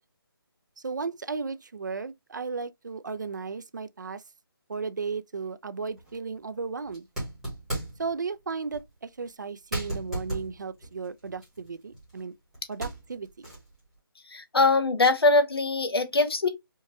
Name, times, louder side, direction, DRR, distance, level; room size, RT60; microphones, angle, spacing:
voice 1, 0.8-4.2 4.7-7.1 8.0-12.3 12.7-13.5, right 4 dB, 50° right, 0.4 m, -35 dB
sound 1, 6.0-6.2 6.9-8.1 8.7-8.9 9.3-9.4 9.7-12.2 12.5-13.8, right 1 dB, 5° right, 1.0 m, -36 dB
voice 2, 14.3-16.5, left 3 dB, 90° left, 1.1 m, -22 dB
4.5 x 2.3 x 2.7 m
hypercardioid pair, 175°, 12 cm